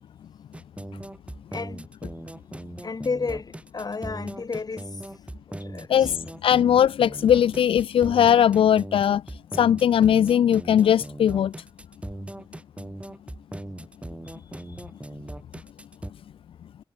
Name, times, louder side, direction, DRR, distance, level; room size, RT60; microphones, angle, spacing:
sound 1, 0.5-16.1, right 1 dB, 15° right, 2.3 m, -39 dB
voice 1, 1.5-1.8 2.8-4.9 5.6-6.1, left 4 dB, 45° left, 1.7 m, -32 dB
voice 2, 5.9-11.5, left 9 dB, 80° left, 0.4 m, -20 dB
cardioid pair, 55°, 9 cm